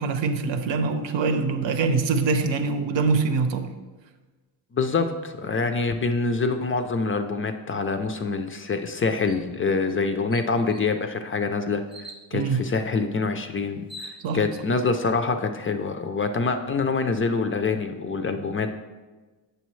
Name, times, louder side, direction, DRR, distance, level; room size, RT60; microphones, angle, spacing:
voice 1, 0.0-3.7 12.3-12.6 14.2-14.4, right 4 dB, 90° right, 7 dB, 0.8 m, -24 dB
voice 2, 4.7-11.8 12.3-18.8, left 4 dB, 30° left, 7 dB, 0.4 m, -25 dB
sound 1, 9.3-9.5 9.9-10.0 10.3-10.9 11.9-12.3 13.4-13.5 13.7-14.6, equal, 10° right, 0.6 m, -43 dB
8.0 x 6.7 x 3.1 m, 1.3 s
wide cardioid pair, 150°, 43 cm